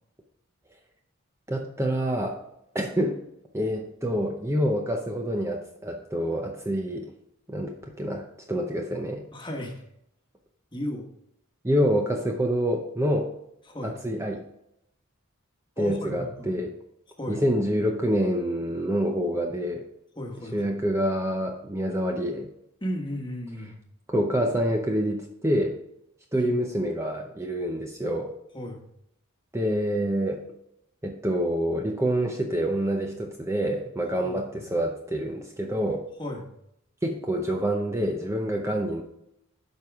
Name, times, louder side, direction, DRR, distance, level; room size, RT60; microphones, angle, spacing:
voice 1, 1.5-2.4 2.7-3.2 3.5-7.1 7.5-9.3 11.6-13.3 13.8-14.4 15.8-16.7 17.3-19.8 20.5-22.5 24.1-25.8 26.3-28.3 29.5-30.4 31.0-36.0 37.0-39.0, equal, 15° right, 1 dB, 0.7 m, -27 dB
voice 2, 9.3-9.8 10.7-11.1 13.7-14.0 15.8-16.5 17.2-17.4 20.1-20.7 22.8-23.8 26.3-26.5 28.5-28.8 34.2-34.6 36.2-36.5, equal, 20° left, 1 dB, 1.3 m, -35 dB
12.0 x 4.7 x 3.6 m, 0.79 s
head